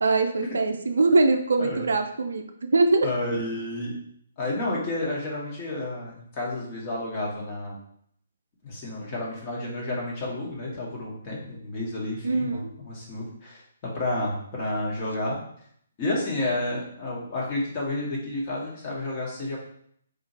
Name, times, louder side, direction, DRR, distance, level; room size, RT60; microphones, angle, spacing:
voice 1, 0.0-2.4 2.7-3.1 12.2-12.7, right 3 dB, 60° right, 6 dB, 0.4 m, -22 dB
voice 2, 3.0-3.9 4.4-7.8 8.6-13.6 13.9-15.4 16.0-19.6, left 1 dB, 30° left, -4 dB, 1.2 m, -30 dB
3.8 x 2.8 x 2.9 m, 0.66 s
figure-of-eight pair, 130°, 0 cm